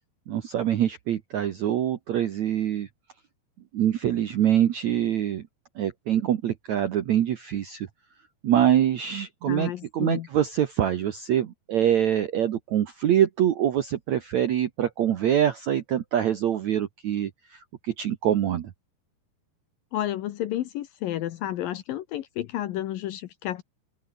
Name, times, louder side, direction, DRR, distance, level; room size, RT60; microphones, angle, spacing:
voice 1, 0.3-2.9 3.7-5.4 5.8-7.9 8.4-18.7, right 10 dB, 70° right, 1.8 m, -24 dB
voice 2, 9.5-10.3 19.9-23.6, left 13 dB, 70° left, 2.4 m, -31 dB
open air
omnidirectional pair, 4.9 m